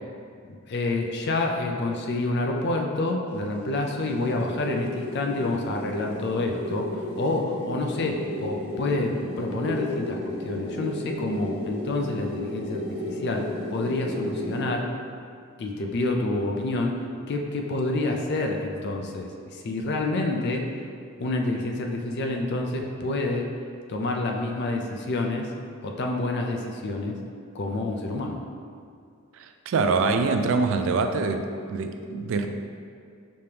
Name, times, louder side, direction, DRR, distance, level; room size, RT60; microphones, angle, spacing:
voice 1, 0.5-14.9 15.6-16.9 17.3-20.6 21.2-23.5 23.9-25.5 25.8-27.2 27.5-28.4, left 2 dB, 50° left, 2 dB, 0.4 m, -28 dB
sound 1, 3.0-14.8, left 1 dB, 25° right, 1.1 m, -34 dB
voice 2, 29.4-32.5, right 4 dB, 60° right, 6 dB, 0.3 m, -25 dB
5.2 x 3.3 x 2.8 m, 2.3 s
head